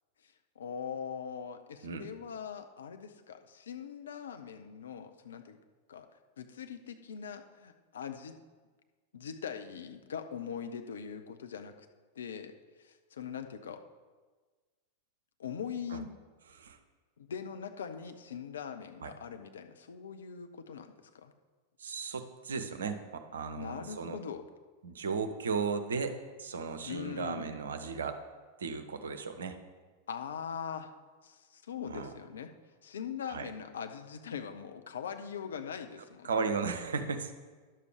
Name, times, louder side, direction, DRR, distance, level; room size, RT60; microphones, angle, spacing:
voice 1, 0.6-5.6 5.9-6.1 6.4-8.4 9.1-11.9 12.2-12.5 12.8-13.8 15.4-16.1 17.2-21.3 23.6-24.5 26.8-27.5 30.1-30.9 31.2-32.5 32.8-36.5, left 7 dB, 65° left, 7 dB, 0.7 m, -41 dB
voice 2, 21.8-24.2 24.8-28.2 28.6-29.6 31.9-32.1 33.3-33.5 36.2-37.3, right 5 dB, 70° right, 8 dB, 0.8 m, -35 dB
11.0 x 6.7 x 4.9 m, 1.4 s
figure-of-eight pair, 90°, 0 cm